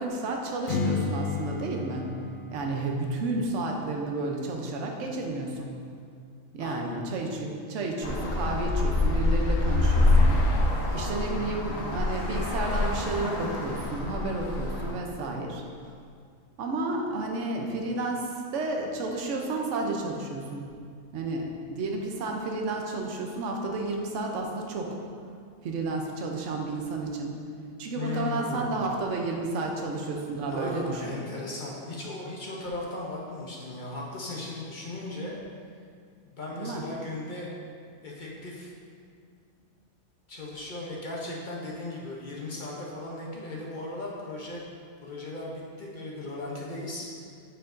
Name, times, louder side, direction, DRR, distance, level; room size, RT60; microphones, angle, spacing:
voice 1, 0.0-2.1 2.5-5.8 6.5-10.6 10.9-15.6 16.6-20.6 21.1-25.0 25.6-27.4 27.8-31.1 36.6-36.8, right 2 dB, 70° right, 1 dB, 1.0 m, -31 dB
Strum, 0.7-5.9, left 4 dB, 65° left, 0.5 m, -35 dB
voice 2, 6.6-7.0 10.9-11.6 27.9-28.9 30.5-35.4 36.2-37.5 38.0-38.7 40.3-44.6 45.0-47.1, left 2 dB, 45° left, -4 dB, 0.8 m, -37 dB
Traffic noise roadway noise, 8.0-14.9, left 2 dB, 80° left, 1.2 m, -25 dB
8.9 x 4.5 x 2.6 m, 2.3 s
omnidirectional pair, 1.4 m